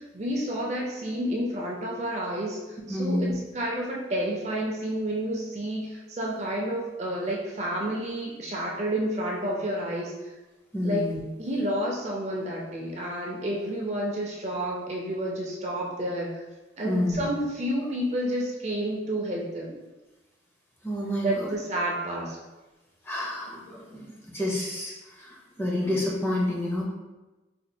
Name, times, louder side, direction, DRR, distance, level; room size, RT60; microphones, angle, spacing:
voice 1, 0.0-10.3 10.8-11.1 11.4-16.4 16.8-19.7 21.2-22.4, right 1 dB, 35° right, -2 dB, 0.5 m, -30 dB
voice 2, 2.9-3.3 10.7-11.2 16.8-17.2 20.8-21.6 23.0-26.8, left 1 dB, 10° left, -4 dB, 0.5 m, -29 dB
4.2 x 2.3 x 2.6 m, 1.1 s
head